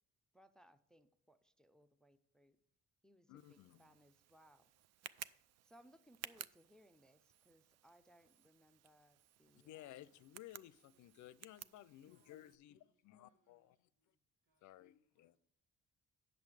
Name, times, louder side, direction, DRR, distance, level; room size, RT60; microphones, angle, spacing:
voice 1, 0.3-2.6 3.0-3.3 3.8-4.7 5.6-9.8, equal, ahead, 0.5 m, -67 dB
voice 2, 3.3-3.9 9.5-13.9 14.6-15.4, left 13 dB, 75° left, 0.5 m, -57 dB
Tick, 3.4-12.6, right 11 dB, 60° right, 0.4 m, -57 dB
voice 3, 10.9-15.4, right 4 dB, 80° right, 1.7 m, -83 dB
8.4 x 6.8 x 4.8 m
cardioid pair, 90°, 30 cm